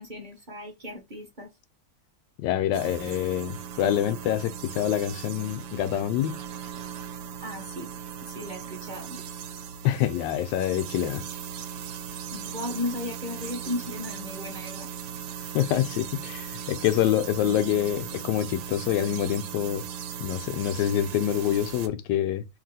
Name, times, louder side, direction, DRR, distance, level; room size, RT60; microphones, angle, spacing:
voice 1, 0.0-1.5 7.4-7.9 8.2-9.2 12.3-14.9, left 2 dB, 40° right, 0.7 m, -35 dB
voice 2, 2.4-6.4 9.8-11.2 15.5-19.8 20.2-22.5, left 11 dB, 85° left, 1.2 m, -26 dB
sound 1, 2.7-21.9, right 8 dB, 75° right, 1.1 m, -38 dB
3.0 x 2.7 x 4.0 m
omnidirectional pair, 1.9 m